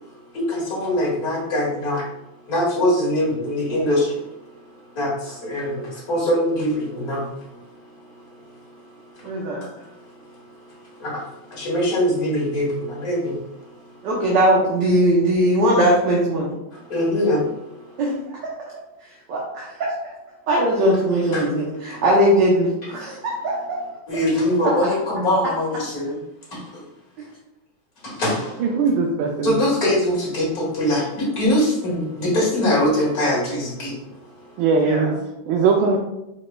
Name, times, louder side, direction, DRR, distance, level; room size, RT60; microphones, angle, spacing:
voice 1, 0.3-2.0 2.5-4.1 5.0-7.3 9.8-9.9 11.0-13.4 16.7-17.6 21.3-21.5 21.9-22.0 24.1-26.2 26.5-26.8 28.0-28.6 29.4-34.0, left 1 dB, 50° left, -4 dB, 2.0 m, -22 dB
voice 2, 9.2-9.6 14.0-16.6 18.0-18.4 19.3-19.9 20.5-23.8 24.6-24.7 34.8-35.1, right 1 dB, 70° right, -4 dB, 1.5 m, -20 dB
voice 3, 28.6-29.6 34.6-35.2 35.5-36.0, right 4 dB, 85° right, 1 dB, 1.4 m, -19 dB
5.2 x 4.3 x 2.2 m, 0.91 s
omnidirectional pair, 2.1 m